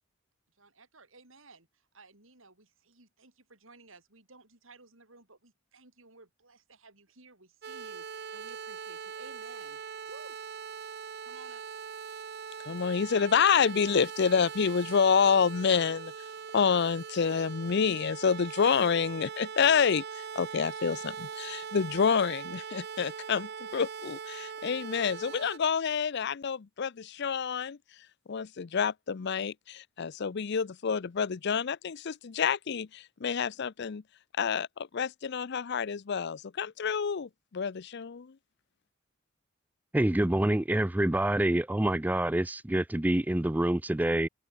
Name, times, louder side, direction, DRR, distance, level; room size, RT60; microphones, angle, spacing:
voice 1, 0.6-10.4 11.2-11.6, right 3 dB, 70° right, 6.2 m, -56 dB
sound 1, 7.6-25.6, right 6 dB, 50° right, 0.7 m, -41 dB
voice 2, 12.7-16.1 16.5-20.0 20.4-27.8 28.3-34.0 34.4-34.7 34.9-38.3, left 6 dB, 55° left, 0.5 m, -28 dB
voice 3, 39.9-44.3, right 1 dB, 10° right, 0.4 m, -26 dB
head